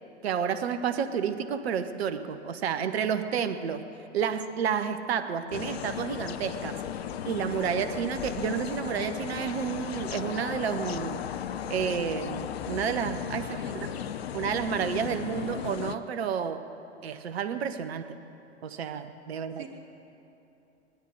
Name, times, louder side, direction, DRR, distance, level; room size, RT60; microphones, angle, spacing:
voice 1, 0.2-3.9 4.1-6.8 7.3-11.2 11.7-13.6 13.8-13.9 14.3-16.6 17.0-18.2 18.6-19.6, right 7 dB, 65° right, 10 dB, 1.0 m, -30 dB
sound 1, 5.5-16.0, left 9 dB, 65° left, 0.7 m, -36 dB
voice 2, 13.4-14.1 19.3-19.7, right 3 dB, 40° right, 0 dB, 2.8 m, -46 dB
19.5 x 12.0 x 5.3 m, 2.9 s
figure-of-eight pair, 95°, 34 cm